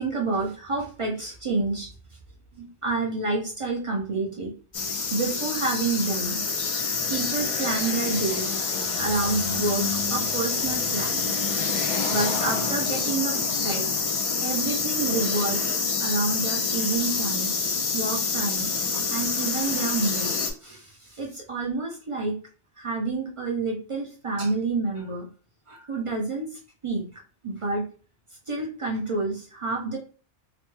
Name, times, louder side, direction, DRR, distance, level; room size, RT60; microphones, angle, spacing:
voice 1, 0.0-1.9 2.5-4.5 5.1-6.4 7.1-8.6 9.0-11.2 12.1-13.8 14.4-17.5 17.9-20.3 20.6-22.4 22.8-25.3 25.7-26.5 26.8-27.0 27.4-27.8 28.5-30.0, right 3 dB, 45° right, -1 dB, 0.4 m, -29 dB
sound 1, 4.7-20.5, left 4 dB, 65° left, 0.3 m, -27 dB
3.0 x 2.1 x 3.0 m, 0.39 s
omnidirectional pair, 1.2 m